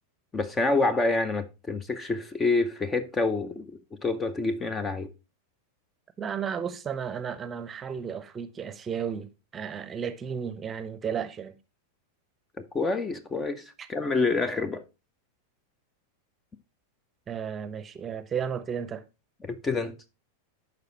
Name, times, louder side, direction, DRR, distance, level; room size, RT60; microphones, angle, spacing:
voice 1, 0.3-5.1 12.7-14.8 19.4-20.0, left 3 dB, 15° left, 0.7 m, -27 dB
voice 2, 6.2-9.3 9.5-11.6 13.8-13.9 17.3-19.0, right 7 dB, 20° right, 0.8 m, -33 dB
11.5 x 4.8 x 3.0 m
figure-of-eight pair, 90°, 0 cm